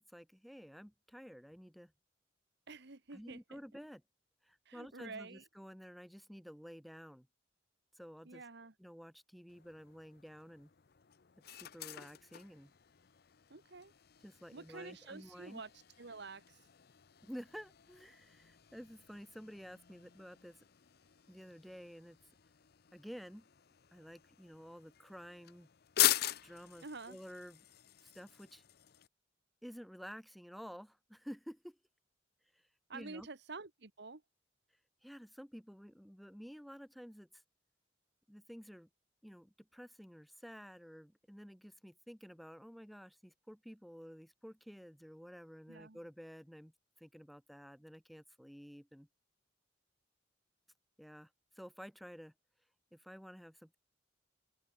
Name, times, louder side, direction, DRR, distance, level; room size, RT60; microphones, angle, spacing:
voice 1, 0.0-1.9 3.1-4.0 4.4-7.3 7.9-8.4 8.8-10.7 11.5-12.7 14.2-15.6 17.2-20.6 21.3-22.2 22.9-23.5 23.9-25.7 26.4-27.6 28.0-28.6 29.6-31.8 32.5-33.3 35.0-37.4 38.3-38.9 39.2-46.7 47.0-49.1 51.0-52.3 52.9-53.8, equal, ahead, 4.4 m, -52 dB
voice 2, 2.7-3.6 4.6-5.4 8.2-8.7 13.5-13.9 14.5-15.7 16.0-16.6 26.8-27.2 32.9-34.2 45.7-46.0, right 3 dB, 60° right, 1.4 m, -49 dB
sound 1, 9.5-29.1, left 13 dB, 55° left, 0.7 m, -42 dB
open air
head